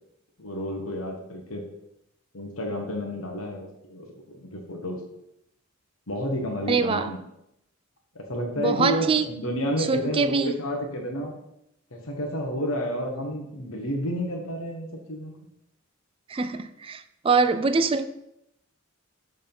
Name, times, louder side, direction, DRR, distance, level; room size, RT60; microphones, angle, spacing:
voice 1, 0.4-1.6 2.3-5.0 6.1-7.2 8.1-11.3 11.9-15.3, equal, 85° left, 1.2 m, -30 dB
voice 2, 6.7-7.1 8.6-9.3 9.9-10.5 16.3-18.0, right 4 dB, 25° right, 0.3 m, -24 dB
6.9 x 3.6 x 5.3 m
head